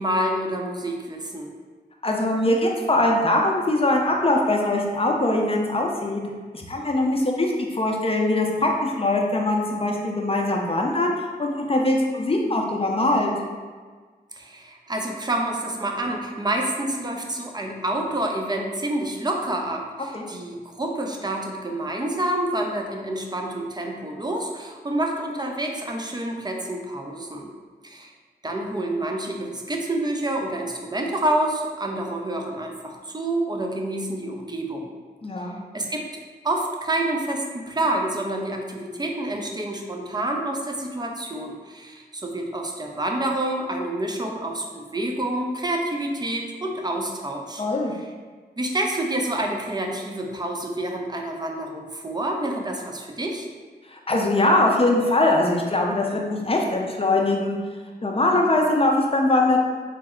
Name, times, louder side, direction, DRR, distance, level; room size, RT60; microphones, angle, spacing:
voice 1, 0.0-1.5 14.3-27.5 27.8-28.1 28.4-34.9 35.7-36.0 36.4-47.6 48.6-53.5, right 1 dB, 25° right, 1 dB, 0.6 m, -28 dB
voice 2, 2.0-6.2 6.5-13.3 20.1-20.2 35.2-35.6 47.6-47.9 53.9-57.6 58.0-59.6, left 2 dB, 35° left, 0 dB, 0.6 m, -22 dB
4.2 x 2.0 x 3.6 m, 1.5 s
cardioid pair, 50°, 17 cm